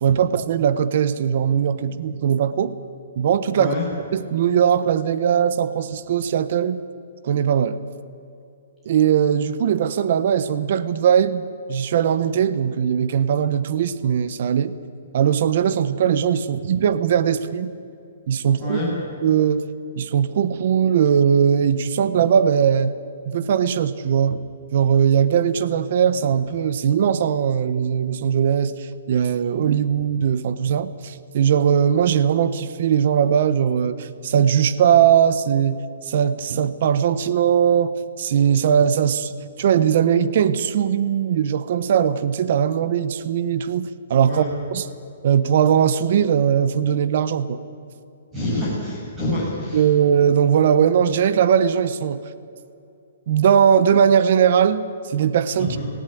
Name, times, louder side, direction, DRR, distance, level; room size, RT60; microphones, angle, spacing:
voice 1, 0.0-2.8 3.2-3.7 4.1-6.8 7.2-7.8 8.9-11.4 11.7-14.8 15.1-17.7 18.3-18.8 19.2-19.6 20.0-23.0 23.3-24.4 24.7-44.4 44.7-44.9 45.2-47.6 49.7-52.2 53.3-55.8, right 8 dB, 50° right, 15 dB, 1.0 m, -19 dB
voice 2, 3.6-3.9 18.6-18.9 44.2-44.5 48.3-49.9 55.6-55.9, left 1 dB, 10° right, -6 dB, 7.3 m, -26 dB
19.0 x 17.5 x 9.3 m, 2.6 s
hypercardioid pair, 170°, 0 cm